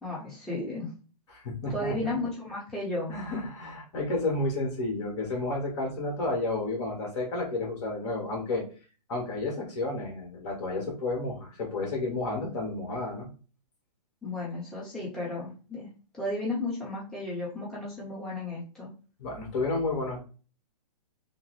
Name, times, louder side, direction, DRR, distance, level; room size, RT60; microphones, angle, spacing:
voice 1, 0.0-0.9 1.7-3.1 14.2-15.9 16.1-18.9, left 2 dB, 5° left, -7 dB, 0.9 m, -34 dB
voice 2, 1.3-1.9 3.1-8.6 9.1-13.3 19.2-20.2, left 2 dB, 45° left, 0 dB, 1.5 m, -31 dB
3.6 x 2.0 x 3.1 m, 0.36 s
hypercardioid pair, 135°, 21 cm